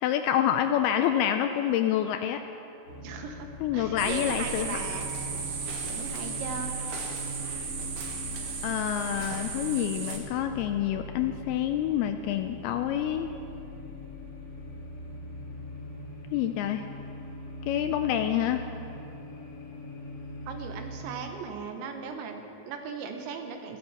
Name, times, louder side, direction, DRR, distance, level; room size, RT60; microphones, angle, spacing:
voice 1, 0.0-2.4 3.6-4.8 8.6-13.3 16.3-16.8 17.7-18.6, left 10 dB, 85° left, 7 dB, 2.2 m, -27 dB
sound 1, 2.9-21.0, left 1 dB, 40° left, 3.1 m, -42 dB
voice 2, 3.0-5.1 5.8-6.8 20.5-23.8, right 6 dB, 90° right, 5 dB, 3.5 m, -38 dB
sound 2, 4.0-10.2, right 5 dB, 60° right, 2.6 m, -35 dB
14.0 x 13.0 x 7.3 m, 2.8 s
omnidirectional pair, 5.1 m